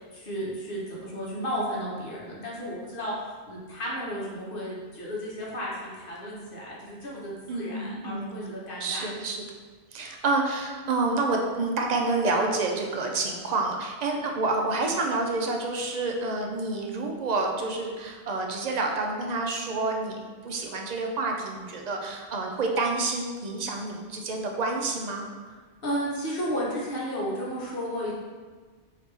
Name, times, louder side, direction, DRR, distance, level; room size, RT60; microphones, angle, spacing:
voice 1, 0.1-3.1 3.5-9.0 25.8-28.1, equal, 55° left, -5 dB, 1.1 m, -33 dB
voice 2, 7.5-8.5 8.8-9.4 9.9-25.3, right 3 dB, 55° right, 1 dB, 0.5 m, -28 dB
4.6 x 2.8 x 3.3 m, 1.4 s
omnidirectional pair, 1.1 m